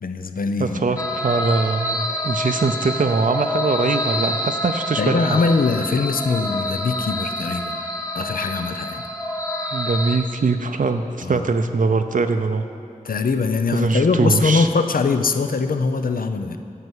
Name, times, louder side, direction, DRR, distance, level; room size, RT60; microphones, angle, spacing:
voice 1, 0.0-1.0 5.0-7.8 8.1-9.0 11.2-11.5 13.0-16.6, left 4 dB, 85° left, 8 dB, 0.5 m, -22 dB
voice 2, 0.6-5.4 9.7-12.6 13.7-14.7, right 4 dB, 70° right, 7 dB, 0.5 m, -22 dB
sound 1, 1.0-10.2, left 1 dB, 25° left, 1.1 m, -27 dB
9.6 x 5.6 x 8.0 m, 2.7 s
wide cardioid pair, 55°, 14 cm